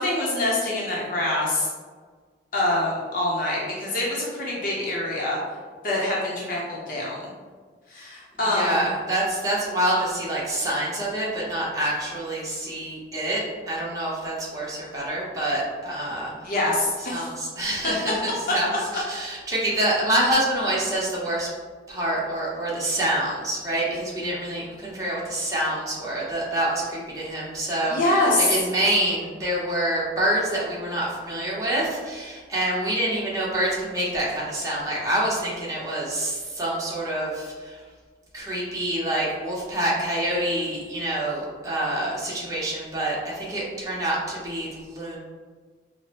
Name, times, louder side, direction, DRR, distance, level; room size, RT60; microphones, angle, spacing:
voice 1, 0.0-1.7 2.5-5.4 5.8-7.2 7.9-8.8 16.4-17.3 27.9-28.5, left 1 dB, 50° left, -5 dB, 0.7 m, -25 dB
voice 2, 8.5-13.4 13.7-16.3 17.1-18.2 18.5-21.5 21.9-37.8 38.3-45.2, right 1 dB, 20° right, -7 dB, 0.9 m, -26 dB
4.6 x 2.1 x 2.9 m, 1.5 s
head